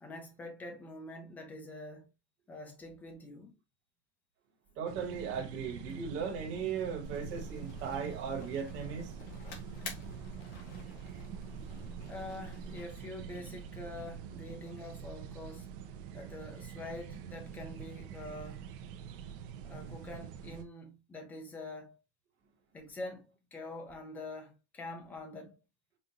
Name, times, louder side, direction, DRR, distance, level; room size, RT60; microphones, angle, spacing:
voice 1, 0.0-2.1 2.5-3.5 12.1-15.7 16.1-18.6 19.6-22.0 22.7-25.6, left 2 dB, 5° left, 0.3 m, -45 dB
voice 2, 4.8-9.1, right 6 dB, 35° right, 1.4 m, -37 dB
sound 1, 4.9-20.6, right 8 dB, 55° right, 0.7 m, -45 dB
sound 2, 7.0-13.0, left 3 dB, 55° left, 1.5 m, -48 dB
5.4 x 2.5 x 2.8 m
supercardioid pair, 175°, 33 cm